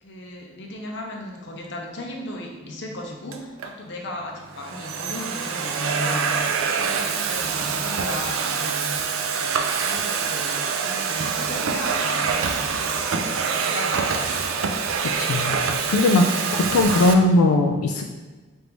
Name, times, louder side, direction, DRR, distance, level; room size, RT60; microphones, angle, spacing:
voice 1, 0.0-9.0 9.3-12.8 13.2-14.5, left 1 dB, 55° left, 0 dB, 0.6 m, -36 dB
Domestic sounds home sounds, 3.3-3.7 4.4-17.1, right 5 dB, 75° right, 0.4 m, -25 dB
voice 2, 15.2-15.5 15.9-16.3 16.5-18.0, left 2 dB, 90° left, 4 dB, 0.3 m, -18 dB
3.3 x 2.6 x 4.5 m, 1.3 s
head